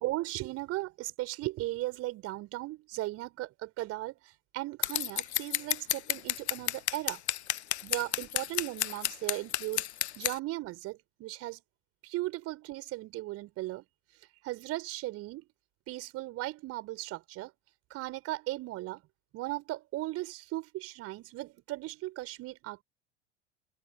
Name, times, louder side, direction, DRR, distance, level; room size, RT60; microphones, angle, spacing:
voice 1, 0.0-7.2 7.8-9.9 10.2-11.6 12.0-13.8 14.4-15.5 15.9-17.5 17.9-19.0 19.3-22.8, right 18 dB, 40° right, 5.0 m, -37 dB
Scissors, 4.8-10.4, left 12 dB, 65° left, 1.0 m, -31 dB
figure-of-eight pair, 80°, 35 cm